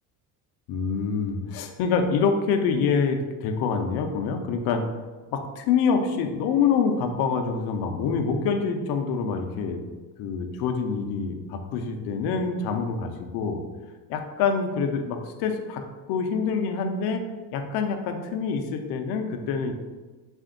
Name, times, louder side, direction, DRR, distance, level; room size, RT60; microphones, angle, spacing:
voice 1, 0.7-4.8 5.3-9.8 10.2-13.6 14.1-17.2 17.5-19.7, left 5 dB, 55° left, 5 dB, 0.6 m, -26 dB
4.2 x 2.5 x 3.7 m, 1.3 s
cardioid pair, 140°, 45 cm